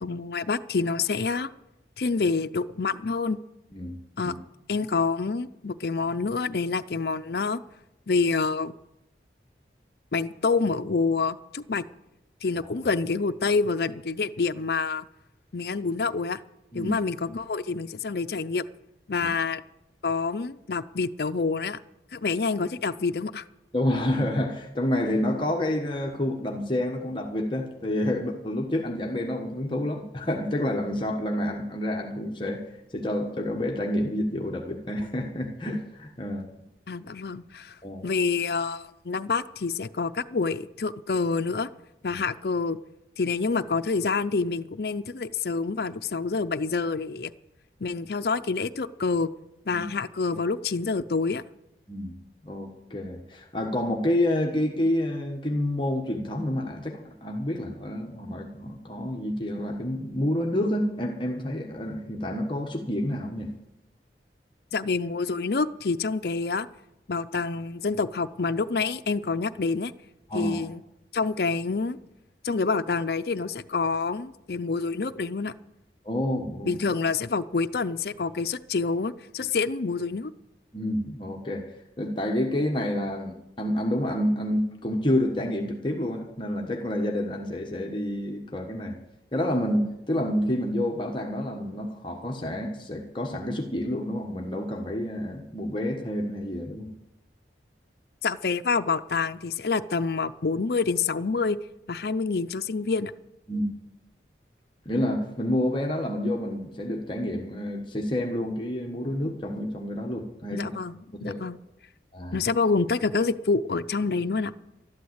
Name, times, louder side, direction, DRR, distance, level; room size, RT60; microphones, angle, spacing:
voice 1, 0.0-1.5 2.0-3.4 4.2-4.3 4.7-7.6 8.1-8.7 10.1-11.8 12.4-15.1 15.5-16.4 16.7-18.6 19.1-19.6 20.0-21.8 22.1-23.4 36.9-37.8 38.0-41.7 42.0-42.8 43.2-47.3 47.8-49.3 49.7-51.4 64.7-66.7 67.1-69.9 70.3-70.8 71.1-72.0 72.4-75.5 76.7-80.3 98.2-101.6 101.9-103.1 110.5-111.6 112.3-114.5, left 4 dB, 60° left, 9 dB, 0.5 m, -27 dB
voice 2, 23.7-32.6 32.9-36.5 37.8-38.0 42.1-42.2 49.7-49.9 51.9-52.1 52.4-63.5 70.3-70.7 76.0-76.7 80.7-81.7 82.0-89.0 89.3-96.9 103.5-103.7 104.8-110.7 111.1-111.4 112.1-112.4, left 1 dB, 25° left, 1 dB, 1.2 m, -29 dB
12.5 x 11.5 x 8.0 m, 0.88 s
head